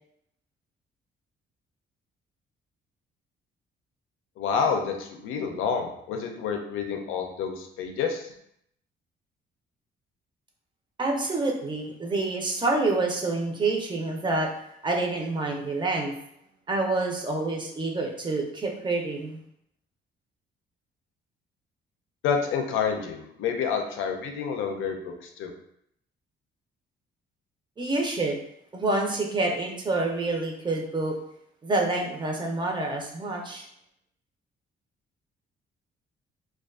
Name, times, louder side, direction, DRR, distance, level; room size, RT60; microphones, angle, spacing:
voice 1, 4.4-8.3 22.2-25.5, left 6 dB, 90° left, 4 dB, 0.4 m, -28 dB
voice 2, 11.0-14.5 14.8-16.1 16.7-19.4 27.8-28.4 28.7-31.1 31.6-33.7, right 2 dB, 25° right, 1 dB, 0.5 m, -27 dB
2.4 x 2.3 x 2.3 m, 0.72 s
cardioid pair, 90°, 20 cm